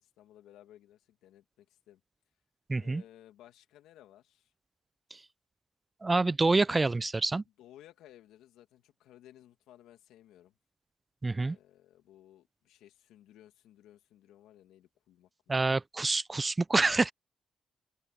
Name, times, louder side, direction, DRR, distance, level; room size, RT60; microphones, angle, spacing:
voice 1, 0.0-2.0 2.8-4.5 7.6-10.5 11.4-15.6, left 12 dB, 90° left, 2.0 m, -58 dB
voice 2, 2.7-3.0 5.1-5.2 6.0-7.4 11.2-11.6 15.5-17.1, right 3 dB, 20° right, 0.3 m, -27 dB
open air
cardioid pair, 90°, 0 cm